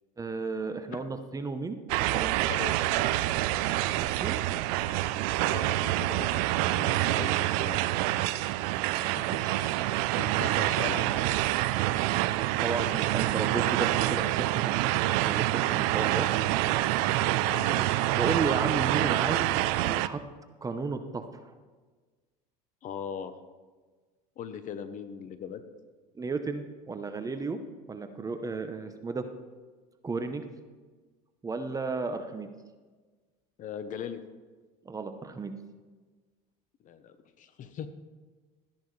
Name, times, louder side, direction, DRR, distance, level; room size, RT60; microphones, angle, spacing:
voice 1, 0.2-1.8 2.1-2.4 4.0-4.4 8.9-10.0 12.6-14.8 15.1-15.4 15.7-16.3 18.2-19.6 19.8-20.2 20.6-21.5 26.2-27.6 27.9-29.3 30.0-30.4 31.4-32.5 34.8-35.5, right 4 dB, 20° right, 8 dB, 0.8 m, -34 dB
sound 1, 1.9-20.1, right 16 dB, 75° right, 0.4 m, -27 dB
voice 2, 2.5-2.9 5.4-6.3 6.6-8.4 9.0-9.1 9.3-9.4 10.2-11.4 17.4-18.1 22.8-23.3 24.4-25.6 33.6-34.2 36.8-37.9, left 7 dB, 45° left, 10 dB, 0.9 m, -40 dB
13.0 x 10.5 x 3.2 m, 1.4 s
supercardioid pair, 110°, 19 cm